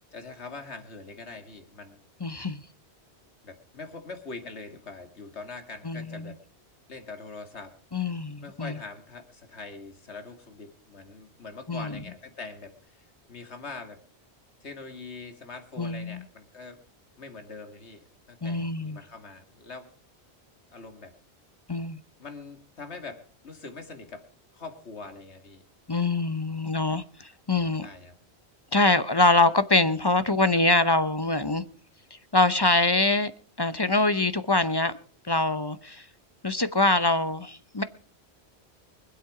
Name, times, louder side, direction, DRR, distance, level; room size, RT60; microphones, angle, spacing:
voice 1, 0.1-2.0 3.4-6.4 6.9-7.8 8.4-14.0 14.6-16.8 17.2-18.0 18.3-19.9 20.7-21.1 22.2-24.3 24.5-25.6 27.8-28.2, left 3 dB, 85° left, 2.4 m, -43 dB
voice 2, 2.2-2.6 5.8-6.3 7.9-8.8 11.7-12.0 15.8-16.2 18.4-19.0 21.7-22.0 25.9-27.9 28.7-31.6 32.3-33.3 33.6-34.9 35.3-36.0 36.4-37.8, left 2 dB, 25° left, 0.7 m, -24 dB
24.0 x 8.2 x 4.9 m
omnidirectional pair, 1.1 m